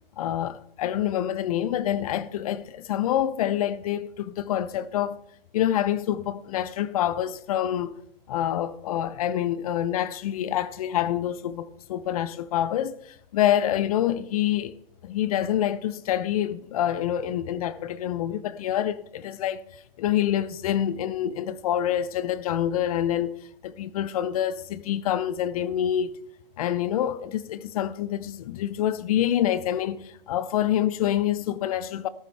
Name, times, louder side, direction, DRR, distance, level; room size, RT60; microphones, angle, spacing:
voice 1, 0.2-5.2 5.5-7.9 8.3-14.7 15.0-19.6 20.0-23.3 23.6-26.2 26.6-32.1, left 11 dB, 40° left, 0.7 m, -26 dB
14.0 x 14.0 x 3.4 m
hypercardioid pair, 135°, 29 cm